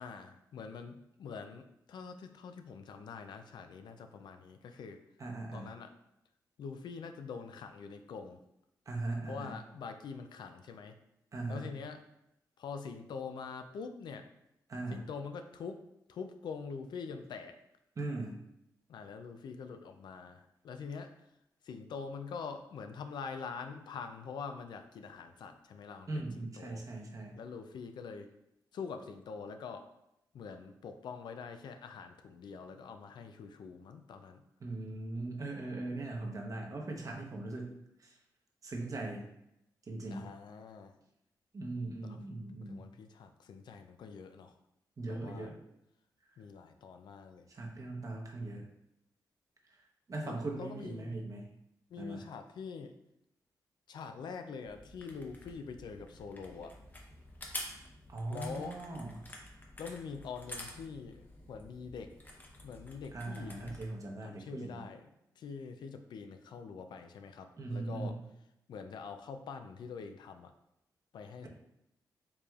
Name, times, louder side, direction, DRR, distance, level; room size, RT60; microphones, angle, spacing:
voice 1, 0.0-5.0 5.5-5.9 6.6-8.4 9.3-10.9 11.5-12.0 12.6-14.3 14.9-15.8 16.1-17.6 18.9-21.1 21.6-26.3 26.6-26.8 27.4-28.3 28.7-29.9 30.3-34.4 40.1-40.9 42.0-42.2 42.6-44.5 45.0-45.5 46.4-47.5 50.2-51.2 51.9-52.9 53.9-56.8 58.3-58.8 59.8-62.1 62.6-63.8 64.2-65.0 65.4-68.2 68.7-70.5 71.1-71.5, left 5 dB, 75° left, 7 dB, 0.4 m, -44 dB
voice 2, 5.2-5.7 8.9-9.6 11.3-11.7 14.7-15.0 18.0-18.4 26.1-27.4 34.6-38.2 38.6-39.2 39.9-40.3 41.5-42.9 45.0-45.6 47.5-48.7 49.7-49.8 50.1-51.5 52.0-52.2 58.1-59.3 63.1-64.9 67.6-68.3, right 2 dB, 50° right, 0 dB, 0.9 m, -40 dB
sound 1, 54.6-63.9, left 1 dB, 25° left, 0.8 m, -49 dB
4.7 x 3.3 x 2.4 m, 0.82 s
cardioid pair, 65°, 8 cm